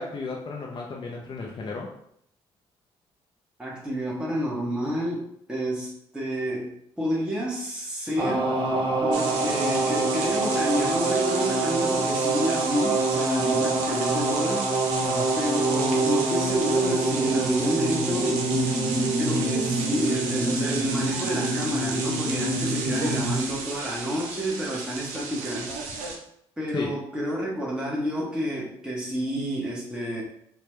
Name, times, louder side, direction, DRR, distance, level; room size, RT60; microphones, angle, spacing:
voice 1, 0.0-1.9 15.1-15.3 26.7-26.9, left 3 dB, 45° left, -1 dB, 0.5 m, -33 dB
voice 2, 3.6-8.5 9.0-15.1 15.4-18.4 19.2-26.1 26.6-30.2, equal, 10° right, -4 dB, 0.9 m, -29 dB
sound 1, 8.2-23.4, right 2 dB, 45° right, 0.7 m, -26 dB
sound 2, 9.1-26.2, right 4 dB, 90° right, 0.5 m, -33 dB
3.3 x 2.1 x 3.1 m, 0.73 s
supercardioid pair, 65°, 11 cm